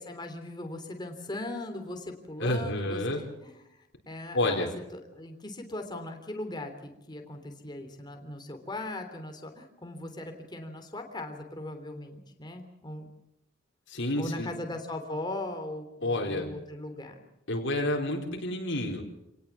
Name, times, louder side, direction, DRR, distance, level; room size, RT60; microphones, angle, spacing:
voice 1, 0.0-4.7 4.9-13.1 14.2-17.2, left 1 dB, 20° left, 5 dB, 3.2 m, -39 dB
voice 2, 2.4-3.2 4.3-4.7 13.9-14.5 16.0-16.5 17.5-19.0, left 1 dB, 60° left, 2 dB, 4.0 m, -29 dB
28.0 x 19.0 x 7.3 m, 0.88 s
head